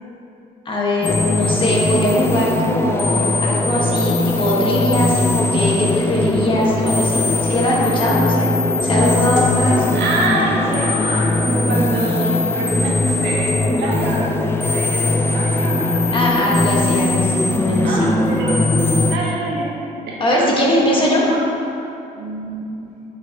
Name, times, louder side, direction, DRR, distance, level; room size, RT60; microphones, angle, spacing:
voice 1, 0.6-8.5 8.8-9.9 16.1-18.1 20.2-21.2, equal, 30° left, -4 dB, 1.6 m, -20 dB
sound 1, 1.0-19.2, left 2 dB, 15° left, 0.5 m, -19 dB
voice 2, 9.9-16.2 17.8-18.7 19.0-21.4 21.7-22.9, right 2 dB, 80° right, -3 dB, 1.5 m, -26 dB
9.3 x 5.6 x 3.0 m, 2.8 s
cardioid pair, 110°, 17 cm